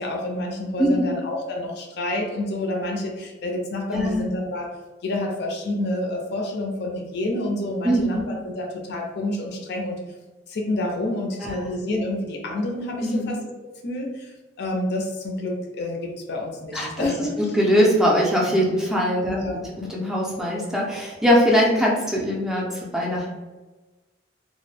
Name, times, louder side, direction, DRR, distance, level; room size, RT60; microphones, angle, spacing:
voice 1, 0.0-4.7 5.0-10.0 10.5-13.4 13.8-17.4 19.2-19.7, left 1 dB, 60° left, 1 dB, 0.5 m, -28 dB
voice 2, 0.8-1.1 3.9-4.2 7.8-8.3 11.4-11.7 13.0-13.3 16.7-17.1 17.4-19.5 19.8-23.3, equal, 5° right, -4 dB, 0.4 m, -21 dB
2.2 x 2.0 x 3.1 m, 1.2 s
head